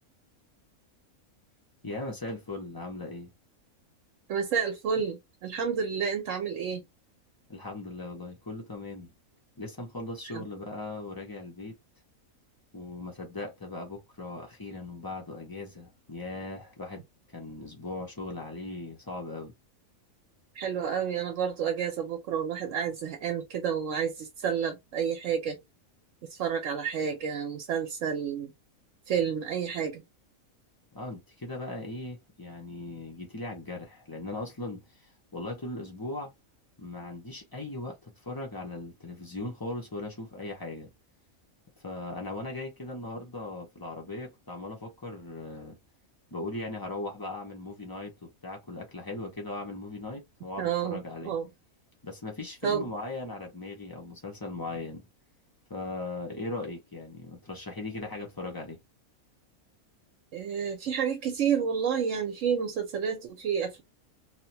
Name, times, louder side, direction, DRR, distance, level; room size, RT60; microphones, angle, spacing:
voice 1, 1.8-3.3 7.5-9.1 9.6-11.8 12.7-17.0 17.3-19.5 30.9-34.8 35.3-36.3 36.8-40.9 41.8-45.8 46.3-51.3 52.0-55.0 55.7-58.8, left 2 dB, 30° left, 0.4 m, -38 dB
voice 2, 4.3-6.8 10.3-10.5 20.5-25.6 26.3-28.5 29.1-30.0 50.6-51.5 52.6-52.8 60.3-63.8, right 7 dB, 65° right, 1.0 m, -30 dB
2.8 x 2.1 x 2.7 m
omnidirectional pair, 1.5 m